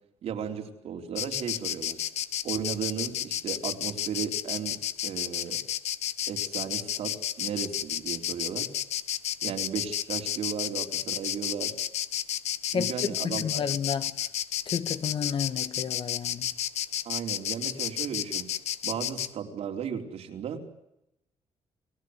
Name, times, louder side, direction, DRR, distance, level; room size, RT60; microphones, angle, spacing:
voice 1, 0.2-2.0 2.4-5.6 6.3-8.7 9.4-11.7 12.7-13.6 17.0-18.5 18.8-20.7, right 7 dB, 75° right, 4.2 m, -35 dB
Insect, 1.2-19.3, left 11 dB, 90° left, 1.1 m, -31 dB
voice 2, 12.7-14.2 14.7-16.5, left 7 dB, 50° left, 1.7 m, -31 dB
29.0 x 19.0 x 8.2 m
cardioid pair, 125°, 11 cm